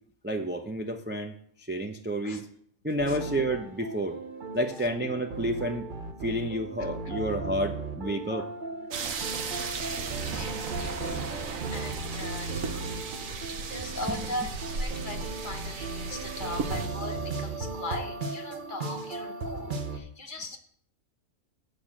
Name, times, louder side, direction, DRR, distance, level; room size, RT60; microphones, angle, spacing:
voice 1, 0.2-1.3 1.7-2.5 2.8-4.2 4.5-5.9 6.2-8.5 14.1-14.2, right 1 dB, 15° right, 3 dB, 0.3 m, -30 dB
sound 1, 3.0-20.0, right 3 dB, 40° right, 1.0 m, -37 dB
sound 2, 8.9-16.9, right 4 dB, 70° right, 1.3 m, -35 dB
voice 2, 9.6-12.9 13.2-20.6, left 2 dB, 40° left, 5 dB, 1.0 m, -40 dB
8.4 x 5.0 x 7.4 m, 0.64 s
omnidirectional pair, 1.5 m